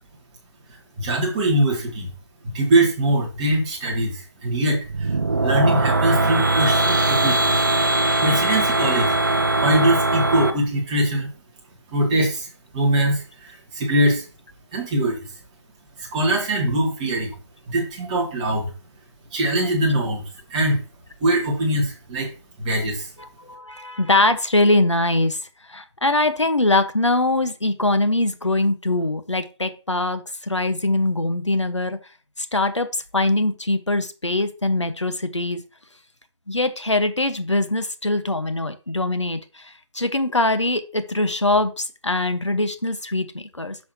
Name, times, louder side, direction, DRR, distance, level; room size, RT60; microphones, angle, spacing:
voice 1, 1.0-2.1 2.4-5.2 5.4-7.5 8.2-9.1 9.6-11.3 11.9-12.5 12.7-14.2 14.7-15.3 16.0-17.3 17.7-18.7 19.3-20.2 20.5-20.8 21.2-22.3 22.6-23.1, right 1 dB, 15° right, -2 dB, 2.1 m, -22 dB
sound 1, 4.8-10.5, right 2 dB, 45° right, 1.0 m, -20 dB
voice 2, 23.2-25.4 25.7-32.0 32.4-35.6 36.5-43.8, left 2 dB, 85° left, 9 dB, 1.5 m, -22 dB
11.0 x 6.2 x 3.0 m, 0.33 s
figure-of-eight pair, 160°, 15 cm